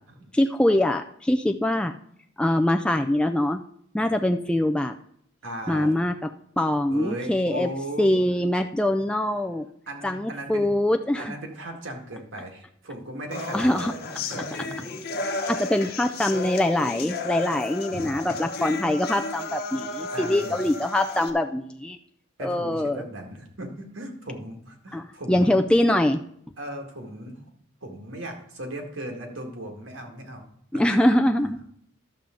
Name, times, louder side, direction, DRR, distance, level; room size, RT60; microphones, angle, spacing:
voice 1, 0.3-1.9 2.4-3.6 3.9-4.9 5.7-6.1 6.6-7.7 8.0-9.7 10.0-11.3 13.5-13.9 15.5-22.0 22.4-23.0 24.9-26.2 30.7-31.6, left 1 dB, 5° left, 5 dB, 0.3 m, -23 dB
voice 2, 5.4-5.9 6.9-8.1 9.9-10.7 11.2-13.9 14.3-14.4 14.8-14.9 15.7-15.9 17.9-18.4 20.1-20.6 22.4-25.6 26.6-27.4 27.8-30.5 30.7-31.1, right 1 dB, 80° right, 2 dB, 2.0 m, -37 dB
sound 1, 13.3-21.3, left 3 dB, 50° left, 1.0 m, -33 dB
11.5 x 7.1 x 3.8 m, 0.66 s
head